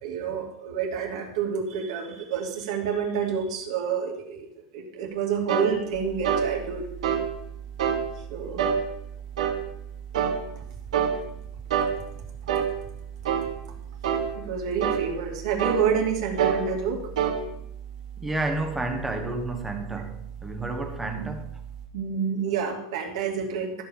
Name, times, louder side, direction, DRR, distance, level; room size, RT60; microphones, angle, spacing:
voice 1, 0.0-4.4 4.7-6.8 8.3-8.6 14.4-17.0 21.2-21.3 21.9-23.7, right 6 dB, 65° right, 2.9 m, -28 dB
sound 1, 5.5-5.7 6.2-6.5 7.0-7.3 7.8-8.0 8.6-8.8 9.4-9.6 10.1-10.4 10.9-11.2 11.7-11.9 12.5-12.7 13.2-13.5 14.0-14.3 14.8-15.0 15.6-15.8 16.4-16.6 17.2-17.4, right 8 dB, 80° right, 2.4 m, -24 dB
sound 2, 5.9-21.9, right 9 dB, 35° right, 2.3 m, -41 dB
voice 2, 18.2-21.5, right 2 dB, 5° right, 1.3 m, -30 dB
13.5 x 5.5 x 7.3 m
supercardioid pair, 165°, 3 cm